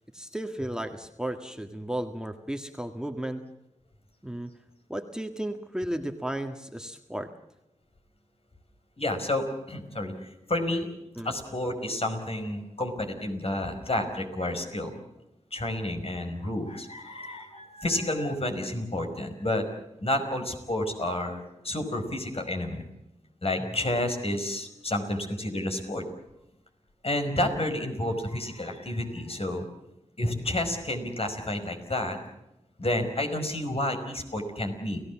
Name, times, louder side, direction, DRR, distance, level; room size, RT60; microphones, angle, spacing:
voice 1, 0.1-3.4 4.2-4.5 4.9-7.3 11.2-11.3, right 1 dB, 5° right, 5 dB, 1.8 m, -34 dB
voice 2, 9.0-10.1 10.5-10.9 11.2-14.9 15.5-19.7 20.0-22.8 23.4-26.0 27.0-29.7 30.2-32.2 32.8-35.0, left 1 dB, 50° left, 5 dB, 5.2 m, -30 dB
30.0 x 16.5 x 7.4 m, 0.88 s
wide cardioid pair, 60°, 13 cm